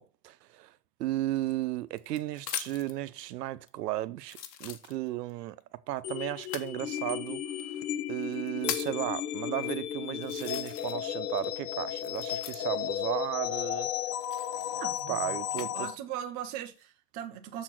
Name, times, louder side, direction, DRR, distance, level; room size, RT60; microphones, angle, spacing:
voice 1, 0.0-7.8 8.1-13.9 14.4-14.5 15.1-15.9, right 15 dB, 80° right, 0.9 m, -35 dB
sound 1, 1.3-3.0 3.7-3.8 4.2-5.3 6.4-6.7 7.6-7.7 8.2-9.0 9.7-9.8 10.2-11.1 11.4-12.9 14.1-15.7 16.3-16.8, left 9 dB, 80° left, 1.4 m, -40 dB
sound 2, 6.0-15.9, left 11 dB, 65° left, 0.9 m, -34 dB
voice 2, 14.8-17.6, right 10 dB, 20° right, 0.4 m, -40 dB
7.2 x 4.3 x 5.9 m
supercardioid pair, 160°, 49 cm